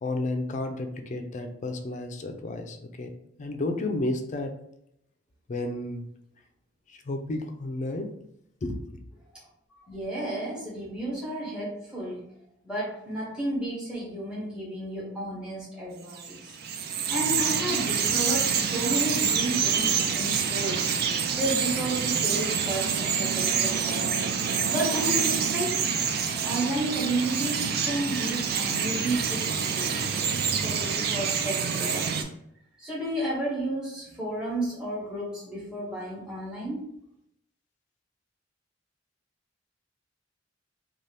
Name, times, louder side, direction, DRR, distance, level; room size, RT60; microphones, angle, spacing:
voice 1, 0.0-3.1 3.4-4.5 5.5-6.0 7.1-8.1 8.6-9.0, left 2 dB, 40° left, 5 dB, 0.4 m, -32 dB
voice 2, 9.8-12.2 12.6-16.5 16.8-20.9 21.3-24.1 24.7-25.8 26.4-30.0 30.5-32.3 32.8-36.8, right 1 dB, 5° right, -7 dB, 0.9 m, -32 dB
Bird vocalization bird call bird song, 16.1-32.2, right 6 dB, 55° right, 0.3 m, -27 dB
2.7 x 2.3 x 3.3 m, 0.74 s
head